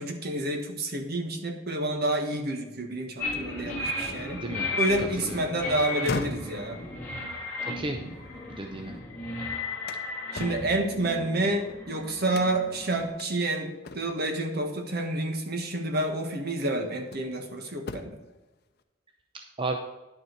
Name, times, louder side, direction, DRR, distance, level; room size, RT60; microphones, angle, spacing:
voice 1, 0.0-4.4 4.7-6.8 10.3-18.2, right 1 dB, 55° right, 4 dB, 1.5 m, -29 dB
sound 1, 3.2-13.1, left 2 dB, 15° left, 3.1 m, -35 dB
voice 2, 5.0-5.4 7.6-8.0 8.5-9.0 19.6-19.8, right 2 dB, 25° right, 3 dB, 0.7 m, -33 dB
sound 2, 5.8-9.0 9.4-11.8 12.3-12.8 13.2-13.3 13.8-14.4 15.6-15.7 16.3-17.4 17.8-18.4, left 3 dB, 55° left, 0.7 m, -39 dB
10.5 x 6.7 x 4.6 m, 1.1 s
head